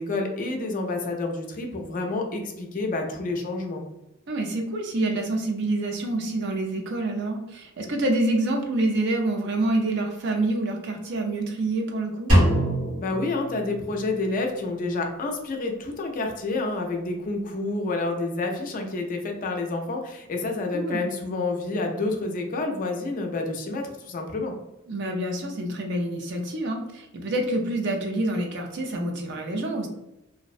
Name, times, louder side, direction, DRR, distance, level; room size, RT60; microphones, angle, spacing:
voice 1, 0.0-3.8 13.0-24.5, left 2 dB, 40° left, 3 dB, 0.4 m, -29 dB
voice 2, 4.3-12.3 20.7-21.0 24.9-29.9, right 2 dB, 55° right, 3 dB, 0.5 m, -27 dB
Drum, 12.3-14.2, equal, 70° right, 1.4 m, -23 dB
2.5 x 2.0 x 2.4 m, 0.93 s
head